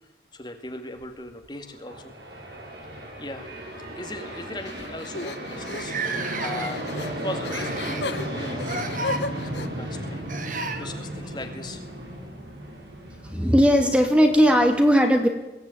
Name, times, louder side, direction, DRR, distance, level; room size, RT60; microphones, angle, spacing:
voice 1, 0.3-2.1 3.2-3.5 4.0-9.0 9.3-11.8, left 2 dB, 25° left, 5 dB, 2.2 m, -38 dB
sound 1, 0.9-2.1 3.2-3.3 3.7-3.9 4.6-4.7 4.9-5.0 5.6-6.9 7.5-8.1 8.6-9.2 10.3-10.8 12.9-13.0 14.1-14.2, right 3 dB, 50° right, 2.5 m, -33 dB
sound 2, 1.9-14.7, right 1 dB, 75° right, 7.6 m, -35 dB
sound 3, 4.7-9.7, left 3 dB, 85° left, 1.4 m, -36 dB
voice 2, 13.2-15.3, equal, 5° right, 4 dB, 2.4 m, -18 dB
22.5 x 17.0 x 9.4 m, 1.0 s
head